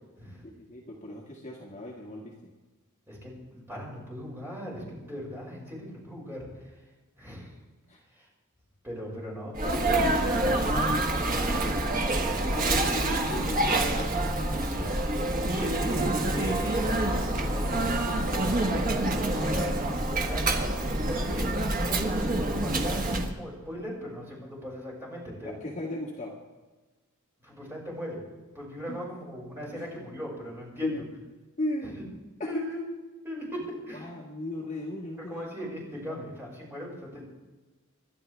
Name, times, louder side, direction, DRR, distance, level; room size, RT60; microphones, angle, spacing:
voice 1, 0.4-2.5 7.9-8.0 12.4-14.1 25.4-26.3 28.9-29.0 29.7-29.8 30.8-31.0 31.6-32.0 32.4-32.7 33.6-35.5 35.8-36.3, left 1 dB, 35° left, -3 dB, 2.0 m, -36 dB
voice 2, 3.1-6.5 7.2-7.5 8.1-8.3 8.8-12.8 13.7-13.9 14.6-14.9 15.4-17.8 18.3-21.5 21.9-25.5 27.4-28.2 28.5-30.9 31.8-31.9 32.4-32.8 33.2-34.0 35.3-37.2, equal, 10° right, -5 dB, 6.0 m, -38 dB
Sneeze, 9.5-23.3, right 2 dB, 40° right, 1.4 m, -27 dB
28.5 x 12.0 x 3.4 m, 1.2 s
head